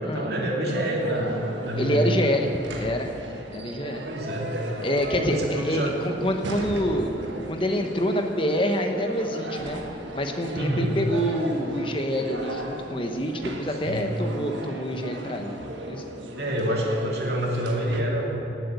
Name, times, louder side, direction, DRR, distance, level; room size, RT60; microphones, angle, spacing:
voice 1, 0.0-2.2 4.0-4.5 5.1-5.9 10.5-11.0 13.8-14.1 16.4-18.5, right 1 dB, 60° right, -2 dB, 2.7 m, -27 dB
sound 1, 0.7-18.0, right 1 dB, 90° right, 1.6 m, -36 dB
voice 2, 1.8-2.5 2.8-3.1 3.5-4.1 4.8-7.1 7.5-9.8 10.1-13.3 13.6-15.6 15.9-16.0, equal, 30° left, 4 dB, 1.1 m, -26 dB
18.0 x 8.0 x 8.3 m, 2.7 s
head